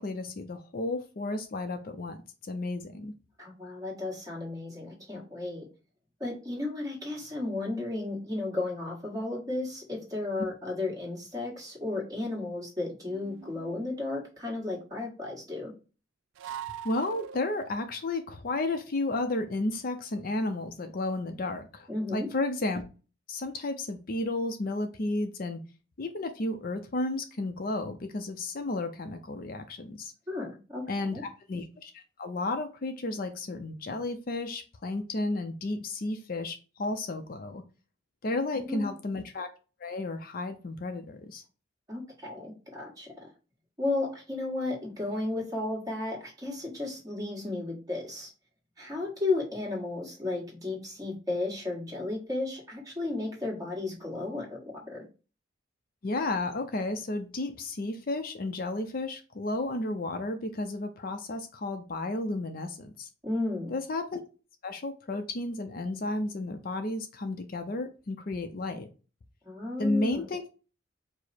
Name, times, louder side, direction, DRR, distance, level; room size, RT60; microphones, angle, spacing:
voice 1, 0.0-2.2 2.5-3.1 16.8-22.8 23.3-25.6 26.0-30.1 30.9-37.6 38.2-39.5 39.8-41.4 56.0-63.1 63.7-64.2 64.6-68.9 69.8-70.4, left 2 dB, 50° left, 7 dB, 0.5 m, -32 dB
voice 2, 3.4-5.6 6.2-15.7 21.9-22.3 30.3-31.2 38.5-38.9 41.9-43.3 43.8-48.3 48.8-54.6 54.9-55.0 63.2-63.7 69.4-70.2, left 2 dB, 20° right, -1 dB, 1.5 m, -34 dB
sound 1, 13.1-14.2 16.4-17.8, right 9 dB, 85° right, 0.3 m, -42 dB
4.8 x 2.1 x 4.1 m, 0.33 s
head